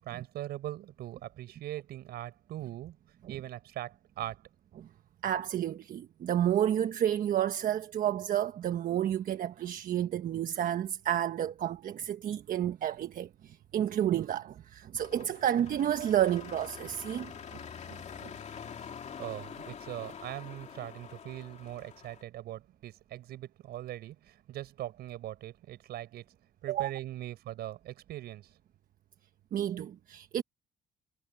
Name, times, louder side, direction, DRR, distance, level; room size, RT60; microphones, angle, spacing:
voice 1, 0.0-3.0 3.3-4.4 19.2-26.3 26.6-28.5, right 14 dB, 70° right, 6.3 m, -41 dB
voice 2, 5.2-17.6 17.9-18.0 18.2-18.3 26.7-26.9 29.5-30.4, right 10 dB, 55° right, 1.3 m, -30 dB
sound 1, 14.9-22.2, left 7 dB, 40° left, 2.4 m, -46 dB
cardioid pair, 110°, 17 cm